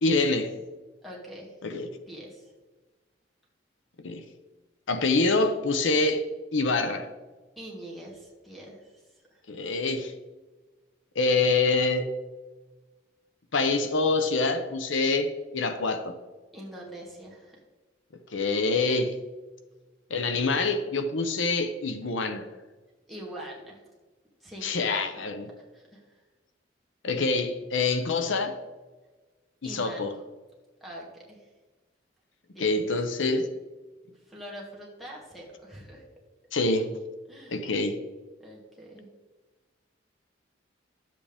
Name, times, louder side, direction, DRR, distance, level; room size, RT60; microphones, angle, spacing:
voice 1, 0.0-0.5 1.6-1.9 4.0-4.2 4.9-6.3 6.5-7.1 9.5-10.1 11.1-12.1 13.5-16.2 18.3-19.1 20.1-22.5 24.6-25.5 27.0-28.6 29.6-30.1 32.6-33.5 36.5-36.9 37.5-38.0, left 3 dB, 85° left, 9 dB, 0.8 m, -26 dB
voice 2, 1.0-2.5 7.6-9.0 9.3-9.4 16.5-17.6 23.1-23.8 24.4-24.7 25.1-25.3 25.7-26.1 29.6-30.1 30.8-31.5 32.5-32.7 34.3-36.0 37.3-37.6 38.4-39.1, right 1 dB, ahead, -3 dB, 2.0 m, -44 dB
11.5 x 7.6 x 3.5 m, 1.3 s
head